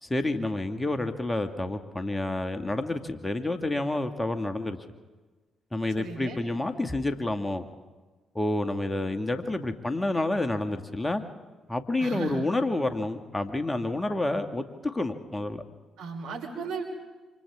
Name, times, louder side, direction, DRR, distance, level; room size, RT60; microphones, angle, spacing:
voice 1, 0.0-4.8 5.7-7.7 8.4-11.2 11.7-15.6, left 2 dB, 15° left, 7 dB, 2.0 m, -29 dB
voice 2, 5.9-6.4 12.0-12.4 16.0-16.8, right 5 dB, 75° right, 1 dB, 4.0 m, -35 dB
28.0 x 26.5 x 3.7 m, 1.3 s
hypercardioid pair, 45°, 0 cm